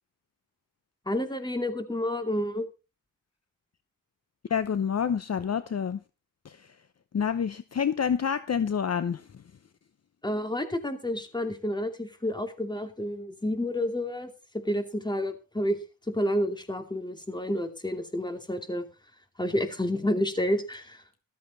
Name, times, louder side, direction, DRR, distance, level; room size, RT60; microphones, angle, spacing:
voice 1, 1.1-2.7 10.2-15.8 16.1-18.9 19.4-21.0, left 1 dB, 10° left, 7 dB, 2.5 m, -30 dB
voice 2, 4.5-6.0 6.4-6.7 7.1-9.3, left 7 dB, 45° left, 13 dB, 0.8 m, -28 dB
14.0 x 13.0 x 4.0 m, 0.30 s
cardioid pair, 85°, 35 cm